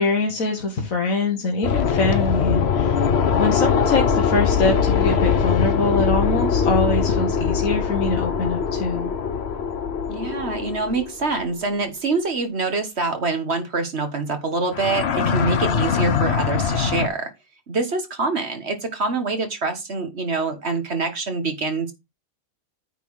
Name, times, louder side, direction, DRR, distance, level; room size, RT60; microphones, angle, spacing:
voice 1, 0.0-3.1 3.4-9.1, left 3 dB, 70° left, 1.7 m, -24 dB
sound 1, 1.6-11.5 14.7-17.1, left 6 dB, 55° left, 1.0 m, -22 dB
voice 2, 10.1-17.3 17.7-21.9, right 3 dB, 50° right, 1.6 m, -25 dB
9.1 x 3.8 x 4.8 m
omnidirectional pair, 1.5 m